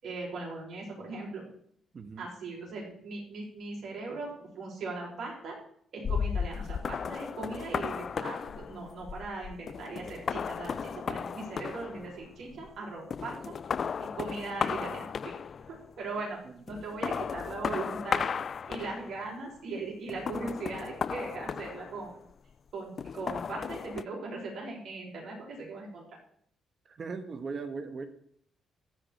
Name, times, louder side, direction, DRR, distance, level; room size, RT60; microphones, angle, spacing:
voice 1, 0.0-1.4 2.2-5.6 5.9-13.5 14.0-15.3 15.7-16.4 16.7-18.3 18.7-22.1 22.7-26.0, right 3 dB, 65° right, -2 dB, 6.1 m, -39 dB
voice 2, 1.9-2.3 26.9-28.0, right 4 dB, 45° right, 8 dB, 1.4 m, -38 dB
sound 1, 6.0-12.8 13.1-15.8 16.7-19.3 20.1-22.3 23.0-24.0, left 6 dB, 45° left, 0.4 m, -35 dB
13.5 x 5.2 x 9.2 m, 0.66 s
cardioid pair, 90°, 0 cm